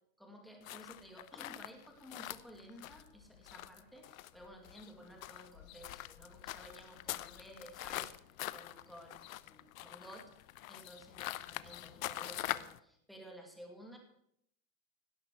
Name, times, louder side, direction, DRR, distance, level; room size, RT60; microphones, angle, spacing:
voice 1, 0.2-8.1 8.5-10.3 10.7-14.0, equal, ahead, 2 dB, 2.2 m, -54 dB
sound 1, 0.6-12.8, left 15 dB, 80° left, 0.9 m, -44 dB
17.5 x 12.5 x 4.7 m, 0.72 s
supercardioid pair, 170°, 40 cm